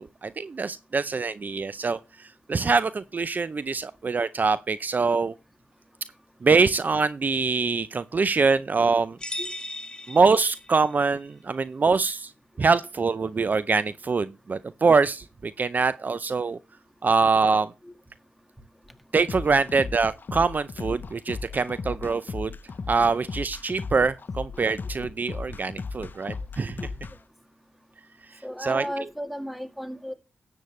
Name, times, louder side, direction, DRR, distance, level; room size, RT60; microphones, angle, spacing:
voice 1, 0.0-5.3 6.4-9.2 10.1-12.3 12.6-16.6 17.0-17.7 19.1-22.5 22.9-26.8 28.6-29.1, right 4 dB, 45° right, 0.5 m, -24 dB
sound 1, 9.2-11.0, left 1 dB, 20° left, 1.7 m, -37 dB
sound 2, 19.3-27.1, left 4 dB, 50° left, 0.8 m, -36 dB
voice 2, 28.4-30.1, equal, ahead, 1.8 m, -34 dB
12.5 x 8.4 x 3.2 m
cardioid pair, 65°, 4 cm